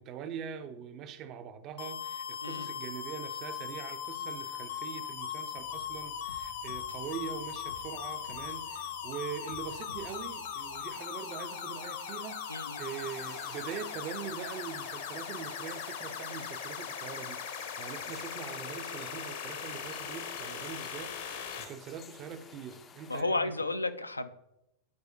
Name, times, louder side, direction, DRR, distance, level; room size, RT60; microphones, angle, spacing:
voice 1, 0.0-23.5, right 7 dB, 35° right, 0.6 m, -43 dB
sound 1, 1.8-21.6, left 8 dB, 55° left, 0.8 m, -39 dB
sound 2, 5.5-10.8, left 2 dB, 90° right, 0.7 m, -54 dB
voice 2, 12.5-12.8 23.1-24.3, left 2 dB, 80° left, 0.4 m, -32 dB
sound 3, 12.8-23.2, left 6 dB, 25° left, 0.4 m, -53 dB
9.4 x 4.7 x 2.6 m
figure-of-eight pair, 90°, 0 cm